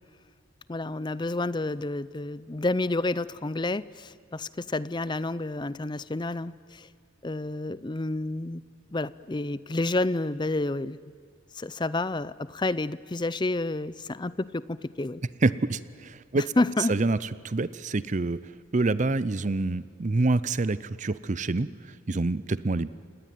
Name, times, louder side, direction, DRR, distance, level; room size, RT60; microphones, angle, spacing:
voice 1, 0.7-6.9 7.2-8.6 8.9-11.0 11.5-15.2 16.4-16.9, left 2 dB, 20° left, 18 dB, 0.5 m, -29 dB
voice 2, 15.4-16.4 16.9-17.2 17.4-18.4 18.7-22.9, right 2 dB, 35° right, 16 dB, 0.6 m, -26 dB
27.5 x 19.0 x 9.2 m, 2.3 s
head